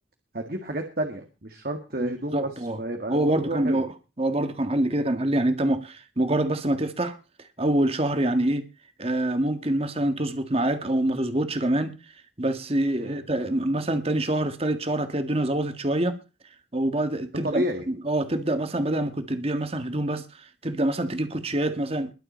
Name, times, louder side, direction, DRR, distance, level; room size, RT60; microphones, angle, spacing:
voice 1, 0.3-2.5 2.8-3.8 8.3-8.5 13.0-13.2 17.4-17.8, right 1 dB, 50° right, 1.9 m, -31 dB
voice 2, 2.0-2.8 3.1-3.9 4.2-7.2 7.6-8.6 9.0-11.9 12.4-16.2 16.7-22.1, right 1 dB, 30° right, 1.7 m, -25 dB
21.5 x 8.0 x 4.4 m
head